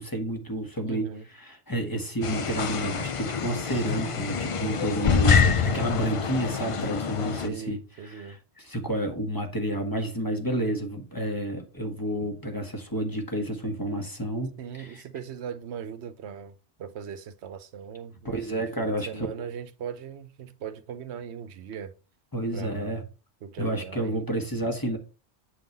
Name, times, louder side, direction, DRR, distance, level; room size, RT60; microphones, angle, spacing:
voice 1, 0.0-15.0 18.2-19.3 22.3-23.0 23.6-25.0, right 1 dB, 20° left, 1.1 m, -30 dB
voice 2, 0.8-1.3 7.3-8.4 14.6-21.9 22.5-23.0 23.4-24.3, right 7 dB, 75° right, 1.0 m, -39 dB
sound 1, 2.2-7.5, left 6 dB, 45° left, 0.4 m, -26 dB
8.3 x 3.8 x 4.0 m
omnidirectional pair, 1.1 m